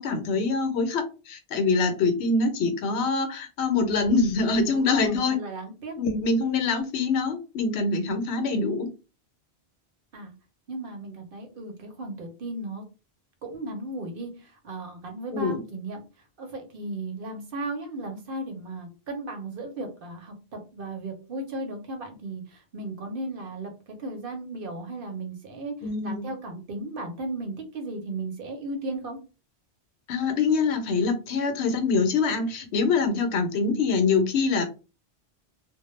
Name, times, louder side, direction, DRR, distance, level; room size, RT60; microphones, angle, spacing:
voice 1, 0.0-5.4 6.0-8.9 15.3-15.6 25.8-26.3 30.1-34.6, left 4 dB, 80° left, 7 dB, 0.9 m, -24 dB
voice 2, 4.6-6.0 10.1-10.3 10.7-12.8 13.4-16.0 16.4-23.7 24.0-25.7 26.0-29.2, right 2 dB, 60° right, 4 dB, 0.8 m, -35 dB
2.2 x 2.0 x 3.0 m, 0.32 s
omnidirectional pair, 1.1 m